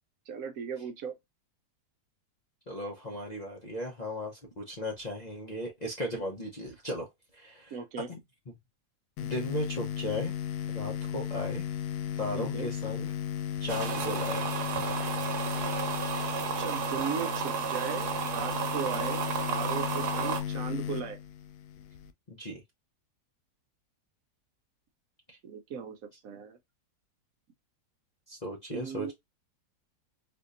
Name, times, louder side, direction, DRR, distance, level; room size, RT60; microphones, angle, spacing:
voice 1, 0.3-1.1 7.7-8.1 12.3-12.7 16.6-19.2 19.5-21.2 25.4-26.0 26.2-26.6 28.7-29.1, right 6 dB, 65° right, 1.0 m, -37 dB
voice 2, 2.7-7.1 7.3-7.8 8.1-8.2 9.2-10.3 10.7-11.6 12.2-13.1 13.6-14.5 22.3-22.6 25.3-25.4 28.3-29.1, left 1 dB, 40° left, 0.7 m, -36 dB
sound 1, 9.2-22.1, left 9 dB, 85° left, 1.1 m, -35 dB
sound 2, 13.7-20.4, right 7 dB, 80° right, 1.3 m, -32 dB
4.2 x 2.7 x 2.5 m
omnidirectional pair, 1.7 m